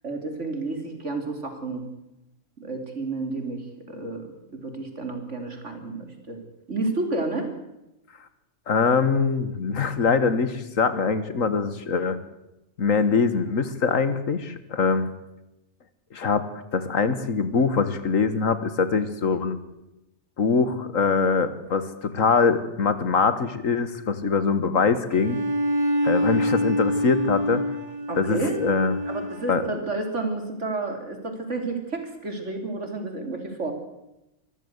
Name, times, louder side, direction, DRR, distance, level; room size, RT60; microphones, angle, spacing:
voice 1, 0.0-1.8 2.6-4.3 4.6-6.4 6.7-7.5 28.1-28.7 29.1-33.7, right 3 dB, 60° right, 5 dB, 3.7 m, -30 dB
voice 2, 8.7-12.2 12.8-15.1 16.1-16.5 16.7-19.6 20.4-25.4 26.0-27.6 28.2-29.0 29.5-29.6, left 5 dB, 75° left, 12 dB, 1.9 m, -23 dB
Bowed string instrument, 25.1-29.8, equal, 25° right, 1.7 m, -26 dB
25.0 x 14.0 x 8.1 m, 0.91 s
omnidirectional pair, 1.4 m